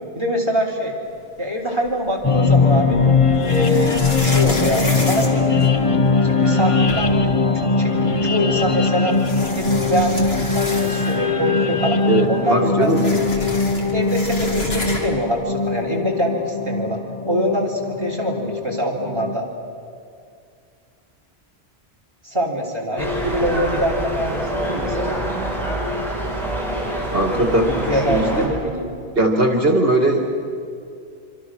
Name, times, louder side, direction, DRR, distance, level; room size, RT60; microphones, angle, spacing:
voice 1, 0.2-0.9 1.4-3.0 3.5-5.6 6.2-7.3 7.6-9.2 9.5-12.0 12.3-13.5 13.9-17.0 17.3-19.5 22.2-25.2 27.9-28.9, equal, 25° right, -1 dB, 3.6 m, -24 dB
sound 1, 1.8-2.6 3.4-6.2 6.6-6.7 6.9-7.4 8.4-8.5 9.1-11.3 11.7-11.8 12.0-15.3, left 1 dB, 70° left, 2.9 m, -30 dB
sound 2, 2.2-19.4, left 4 dB, 35° left, 0.9 m, -20 dB
voice 2, 12.1-13.0 27.1-28.5 29.2-30.2, right 1 dB, 60° right, 3 dB, 2.3 m, -19 dB
sound 3, 23.0-28.5, equal, ahead, 5.0 m, -25 dB
26.5 x 25.5 x 6.3 m, 2.3 s
omnidirectional pair, 1.1 m